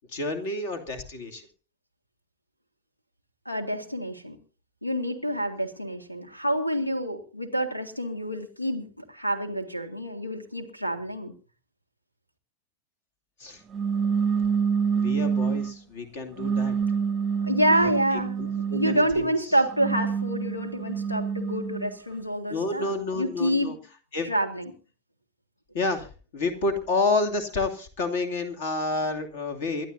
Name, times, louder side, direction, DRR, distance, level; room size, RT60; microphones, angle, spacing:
voice 1, 0.1-1.4 13.4-13.6 14.9-16.7 17.7-19.5 22.5-23.8 24.1-24.3 25.7-29.9, left 3 dB, 55° left, 7 dB, 2.6 m, -29 dB
voice 2, 3.5-4.4 4.8-11.3 17.4-23.8 24.2-24.7, equal, 85° left, 7 dB, 2.0 m, -28 dB
sound 1, 13.7-15.8 16.4-19.1 19.6-21.9, right 6 dB, 20° right, 0.7 m, -27 dB
28.0 x 11.5 x 2.7 m, 0.35 s
figure-of-eight pair, 90°, 0 cm